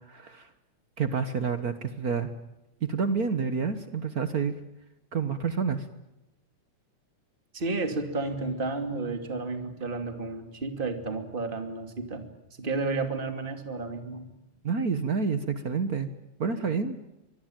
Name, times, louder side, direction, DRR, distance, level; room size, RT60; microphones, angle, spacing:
voice 1, 0.1-0.5 1.0-2.3 2.8-4.6 5.1-5.9 14.6-16.1 16.4-17.0, right 5 dB, 60° right, 10 dB, 0.9 m, -28 dB
voice 2, 7.5-12.3 12.6-14.3, right 3 dB, 15° right, 6 dB, 2.5 m, -32 dB
25.0 x 22.5 x 9.0 m, 0.94 s
omnidirectional pair, 3.5 m